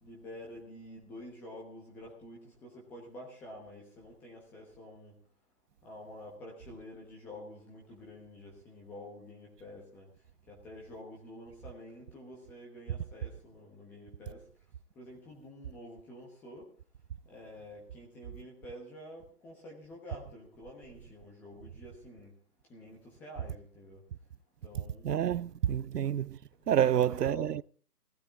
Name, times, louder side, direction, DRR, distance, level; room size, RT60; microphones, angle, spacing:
voice 1, 0.0-5.1 5.8-10.1 10.5-14.4 15.0-16.7 17.3-22.3 22.7-24.0 24.6-25.3 26.6-27.5, left 1 dB, 5° left, 1.1 m, -49 dB
voice 2, 25.0-26.4 26.7-27.6, right 10 dB, 85° right, 0.6 m, -28 dB
15.5 x 15.5 x 3.6 m
hypercardioid pair, 160°, 47 cm